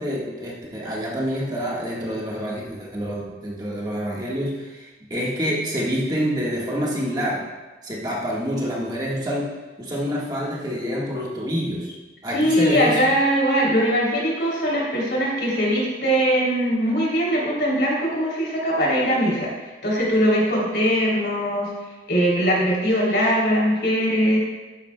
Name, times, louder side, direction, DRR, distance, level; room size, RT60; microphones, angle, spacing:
voice 1, 0.0-7.4 7.8-9.5 9.8-11.9 12.2-13.0, equal, 20° right, -4 dB, 1.4 m, -27 dB
voice 2, 12.3-19.5 19.8-21.7 22.1-24.4, equal, 65° left, -4 dB, 3.0 m, -21 dB
12.0 x 9.1 x 2.2 m, 1.2 s
head